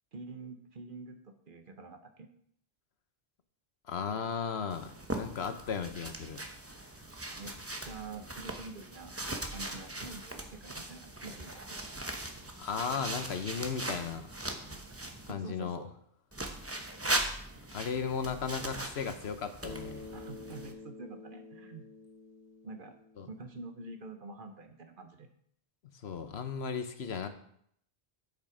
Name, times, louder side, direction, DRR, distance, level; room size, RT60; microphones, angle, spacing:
voice 1, 0.1-2.3 7.2-7.6 7.8-9.1 9.5-11.8 15.2-15.9 20.1-21.9 22.6-23.0 23.3-25.3, right 3 dB, 55° right, 6 dB, 1.1 m, -46 dB
voice 2, 3.9-6.4 6.8-6.9 12.6-14.3 15.3-15.8 17.7-20.1 23.2-23.3 26.0-27.3, left 6 dB, 90° left, 9 dB, 1.2 m, -36 dB
sound 1, 4.7-15.3 16.3-20.7, right 1 dB, 15° right, 0.8 m, -39 dB
Bass guitar, 19.6-23.8, left 3 dB, 40° right, 2.0 m, -49 dB
8.1 x 7.3 x 5.0 m, 0.67 s
omnidirectional pair, 1.0 m